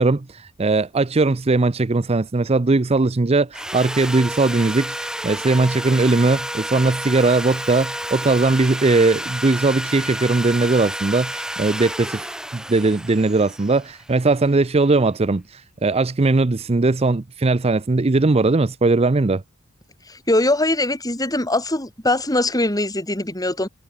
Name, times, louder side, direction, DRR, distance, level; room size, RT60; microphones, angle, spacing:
voice 1, 0.0-4.9 5.2-19.4, right 3 dB, 25° right, 0.5 m, -19 dB
Sawing, 3.5-14.6, right 1 dB, 5° right, 3.5 m, -30 dB
voice 2, 20.1-23.7, left 1 dB, 15° left, 5.2 m, -21 dB
head